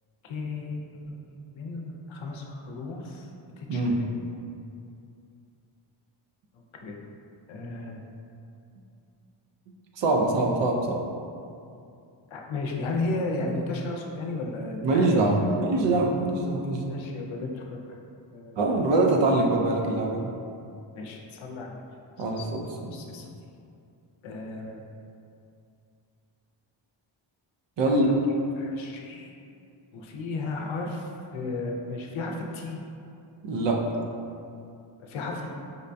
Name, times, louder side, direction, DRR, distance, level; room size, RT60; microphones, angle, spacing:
voice 1, 0.2-3.3 3.6-4.1 6.7-7.0 7.5-8.0 12.3-15.2 16.9-18.0 18.3-18.6 21.0-21.8 22.4-22.5 22.9-23.3 24.2-24.8 27.9-28.2 28.5-29.3 29.9-32.8 35.0-35.5, left 3 dB, 75° left, 1 dB, 0.6 m, -34 dB
voice 2, 3.7-4.0 10.0-11.0 14.8-16.9 18.6-20.3 22.2-22.9 27.8-28.1 33.4-33.8, right 2 dB, 65° right, 0 dB, 0.5 m, -24 dB
5.1 x 2.2 x 2.5 m, 2.5 s
wide cardioid pair, 145°, 48 cm